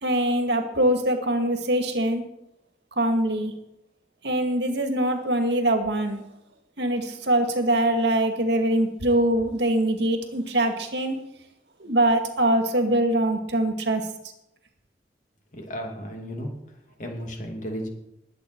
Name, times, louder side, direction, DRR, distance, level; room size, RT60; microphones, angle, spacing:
voice 1, 0.0-2.2 3.0-3.5 4.2-6.2 6.8-11.2 11.8-14.0, right 1 dB, 75° right, 5 dB, 2.0 m, -23 dB
voice 2, 15.5-16.5 17.0-17.9, equal, 45° left, 2 dB, 2.7 m, -34 dB
20.5 x 8.3 x 4.6 m, 0.85 s
head